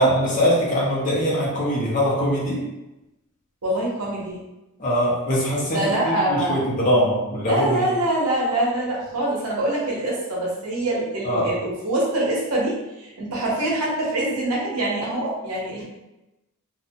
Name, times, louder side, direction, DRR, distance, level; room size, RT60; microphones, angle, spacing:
voice 1, 0.0-2.6 4.8-7.8 11.2-11.5, equal, 35° left, -6 dB, 0.8 m, -22 dB
voice 2, 3.6-4.4 5.7-6.6 7.5-15.8, right 1 dB, 85° right, -5 dB, 1.0 m, -24 dB
2.6 x 2.2 x 2.7 m, 0.98 s
head